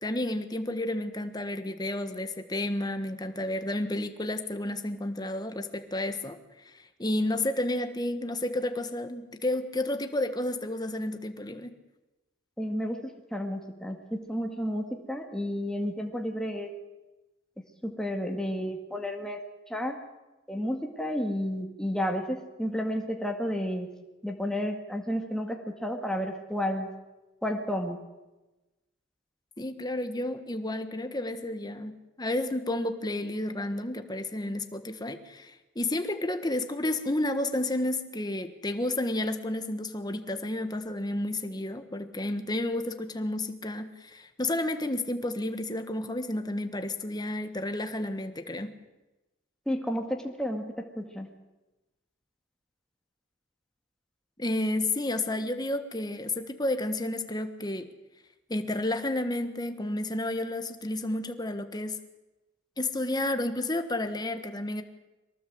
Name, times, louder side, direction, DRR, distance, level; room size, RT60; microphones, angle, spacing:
voice 1, 0.0-6.4 6.6-11.7 29.6-48.7 54.4-57.9 58.5-62.0 62.8-64.8, left 1 dB, 20° left, 8 dB, 1.4 m, -31 dB
voice 2, 12.6-16.7 17.8-19.4 19.7-20.0 20.5-23.9 24.2-26.9 27.4-28.0 49.7-51.3, equal, 5° left, 3 dB, 2.0 m, -31 dB
23.0 x 18.5 x 7.9 m, 1.1 s
head